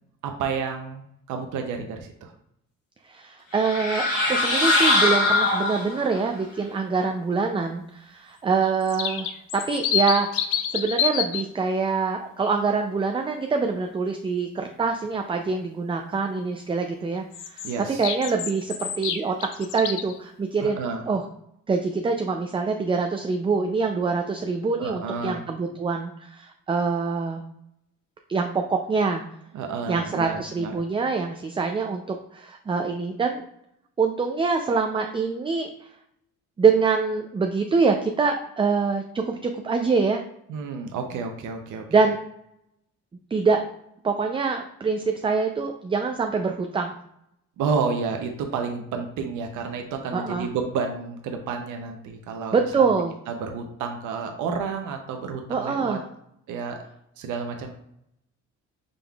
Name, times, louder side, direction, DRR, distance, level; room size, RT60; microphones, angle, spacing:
voice 1, 0.2-1.0 1.3-2.3 17.6-18.1 20.6-21.0 24.8-25.4 29.5-30.7 40.5-42.0 47.6-56.0 56.5-56.8 57.2-57.7, right 5 dB, 80° right, 4 dB, 0.6 m, -30 dB
voice 2, 3.1-9.3 9.5-10.3 10.7-17.7 18.0-20.8 21.1-21.2 21.7-27.4 28.3-29.2 29.9-33.4 34.0-35.7 36.6-40.2 41.9-42.2 43.3-43.6 44.0-46.9 50.1-50.5 52.5-53.1 55.5-56.0, right 4 dB, 20° right, 4 dB, 0.3 m, -25 dB
sound 1, 3.5-6.2, left 2 dB, 50° left, 1.6 m, -22 dB
sound 2, 8.6-11.4 17.3-20.2, left 9 dB, 85° left, 0.5 m, -28 dB
5.1 x 3.6 x 2.3 m, 0.76 s
cardioid pair, 90°, 30 cm